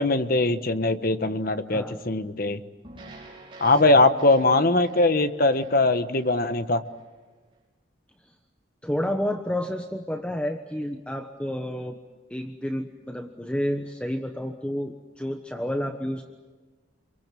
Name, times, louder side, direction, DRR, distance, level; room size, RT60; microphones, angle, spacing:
voice 1, 0.0-2.6 3.6-6.8, left 2 dB, 50° left, 10 dB, 1.4 m, -21 dB
sound 1, 2.8-7.2, right 2 dB, 25° right, 6.2 m, -48 dB
voice 2, 8.8-12.0 12.3-16.3, equal, 5° left, 4 dB, 1.2 m, -30 dB
29.0 x 23.5 x 7.7 m, 1.3 s
head